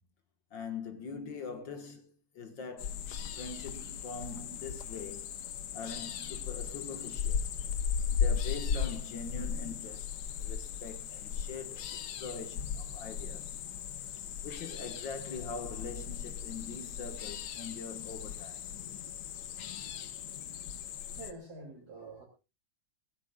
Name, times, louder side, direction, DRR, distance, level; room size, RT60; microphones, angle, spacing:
voice 1, 0.5-3.0 3.3-5.3 5.7-7.5 8.1-13.6 14.4-18.7, left 5 dB, 65° left, 2.2 m, -43 dB
sound 1, 2.8-21.3, left 7 dB, 80° left, 1.9 m, -37 dB
voice 2, 21.1-22.2, right 2 dB, 50° right, 3.4 m, -46 dB
21.0 x 17.0 x 2.4 m
omnidirectional pair, 2.3 m